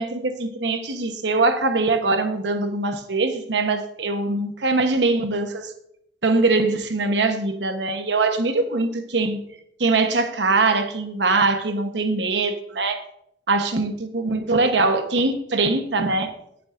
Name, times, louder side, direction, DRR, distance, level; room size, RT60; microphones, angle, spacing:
voice 1, 0.0-5.7 6.2-9.4 9.8-13.0 13.5-16.3, right 3 dB, 80° right, 7 dB, 1.1 m, -22 dB
19.5 x 7.1 x 2.6 m, 0.75 s
head